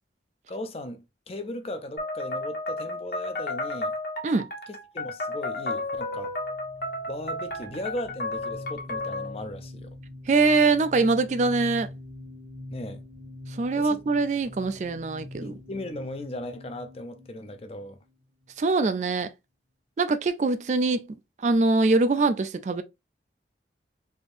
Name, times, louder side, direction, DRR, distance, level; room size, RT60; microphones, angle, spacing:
voice 1, 0.5-4.0 4.9-6.4 7.1-9.9 12.7-13.0 13.8-14.0 15.4-18.0, left 1 dB, 35° left, 0.5 m, -37 dB
sound 1, 2.0-9.4, left 2 dB, 50° left, 1.1 m, -33 dB
sound 2, 6.1-18.5, left 1 dB, 65° right, 1.3 m, -44 dB
voice 2, 10.3-11.9 13.5-15.6 18.6-19.3 20.0-21.1 21.4-22.8, right 3 dB, 40° right, 0.3 m, -23 dB
3.4 x 2.7 x 2.4 m
head